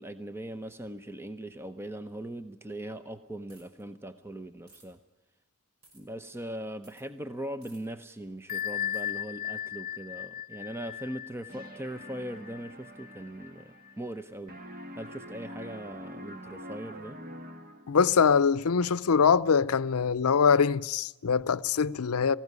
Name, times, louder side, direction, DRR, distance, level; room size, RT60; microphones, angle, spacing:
voice 1, 0.0-5.0 5.9-14.6 15.0-17.2, right 1 dB, 10° right, 0.7 m, -40 dB
sound 1, 3.5-3.8 4.7-4.9 5.8-6.0 6.8-7.1 7.6-7.8 8.9-9.1, right 2 dB, 85° right, 6.0 m, -58 dB
Bell, 8.5-13.9, left 10 dB, 45° left, 0.8 m, -37 dB
sound 2, 11.5-14.2 14.5-18.1, equal, 40° right, 1.6 m, -45 dB
voice 2, 17.9-22.4, left 6 dB, 90° left, 0.6 m, -23 dB
19.0 x 16.0 x 9.4 m
head